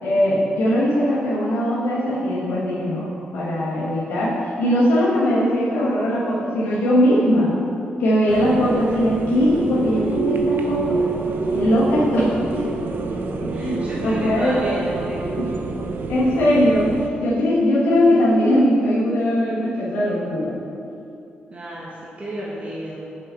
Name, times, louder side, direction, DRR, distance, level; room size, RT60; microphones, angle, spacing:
voice 1, 0.0-3.1 3.3-7.5 8.0-11.0 11.5-12.6 13.4-14.6 15.4-15.5 16.1-16.9 17.2-20.6, equal, 90° left, -8 dB, 1.3 m, -20 dB
sound 1, 8.3-17.1, right 4 dB, 65° right, 0.7 m, -27 dB
voice 2, 13.5-15.4 21.5-23.2, right 1 dB, 35° right, -6 dB, 1.4 m, -31 dB
5.8 x 5.5 x 5.6 m, 2.6 s
supercardioid pair, 55°, 4 cm